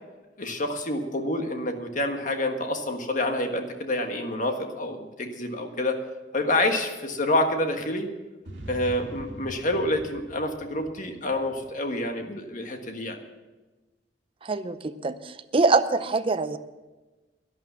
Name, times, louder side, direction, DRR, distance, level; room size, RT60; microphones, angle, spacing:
voice 1, 0.4-6.0 6.3-8.1 8.7-13.2, left 1 dB, 45° left, 5 dB, 1.6 m, -28 dB
sound 1, 8.4-12.0, right 1 dB, 75° right, 2.2 m, -42 dB
voice 2, 14.4-16.6, right 3 dB, 30° right, 10 dB, 0.6 m, -24 dB
11.5 x 11.0 x 7.4 m, 1.2 s
head